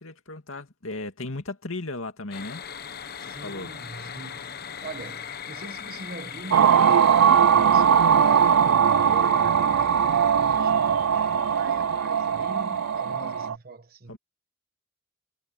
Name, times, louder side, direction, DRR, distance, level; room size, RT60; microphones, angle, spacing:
voice 1, 0.0-2.6 3.2-3.7 14.1-14.2, left 2 dB, 70° left, 2.5 m, -36 dB
sound 1, 2.3-13.5, left 8 dB, 50° left, 1.1 m, -40 dB
voice 2, 3.2-14.2, right 3 dB, 45° right, 1.3 m, -42 dB
sound 2, 6.5-13.5, right 8 dB, 75° right, 0.4 m, -20 dB
head